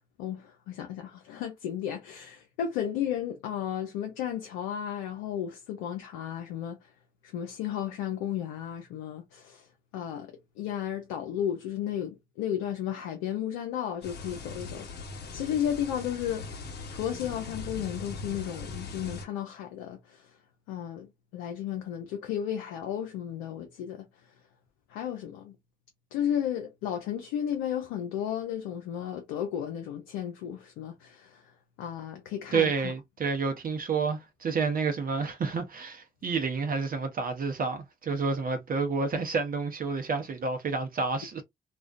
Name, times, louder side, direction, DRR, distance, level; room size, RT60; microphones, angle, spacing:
voice 1, 0.2-6.9 7.2-9.7 9.9-14.9 15.3-16.6 16.9-20.3 20.7-21.1 21.3-24.1 24.9-25.6 26.1-31.5 31.8-32.9, left 9 dB, 90° left, 0.4 m, -33 dB
sound 1, 14.0-19.3, left 3 dB, 60° left, 0.9 m, -40 dB
voice 2, 32.5-41.4, right 4 dB, 50° right, 0.7 m, -29 dB
2.3 x 2.1 x 2.4 m
hypercardioid pair, 45°, 19 cm